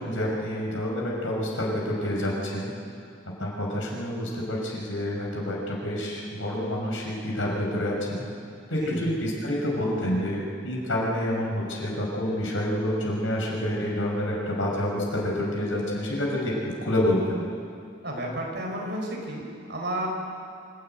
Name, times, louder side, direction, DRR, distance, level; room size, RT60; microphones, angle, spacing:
voice 1, 0.0-2.7 3.4-8.2 8.7-17.4, left 1 dB, 75° left, -2 dB, 6.1 m, -28 dB
voice 2, 18.0-20.1, right 1 dB, 55° right, -1 dB, 4.9 m, -32 dB
26.0 x 13.0 x 9.3 m, 2.4 s
head